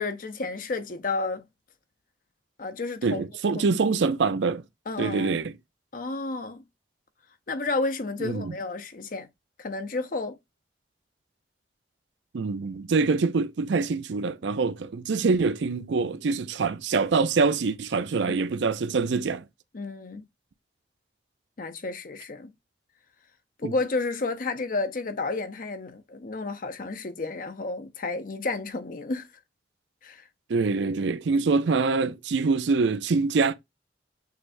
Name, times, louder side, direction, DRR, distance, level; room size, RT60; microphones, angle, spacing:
voice 1, 0.0-1.4 2.6-3.2 3.5-3.8 4.9-5.4 5.9-6.6 7.5-9.3 9.6-10.4 18.3-18.4 19.7-20.2 21.6-22.5 23.6-29.3 30.0-30.3, left 3 dB, 50° left, 0.6 m, -31 dB
voice 2, 3.0-4.6 5.0-5.5 8.2-8.5 12.3-19.4 23.6-23.7 30.5-33.5, right 4 dB, 85° right, 0.5 m, -25 dB
6.5 x 3.2 x 2.6 m
head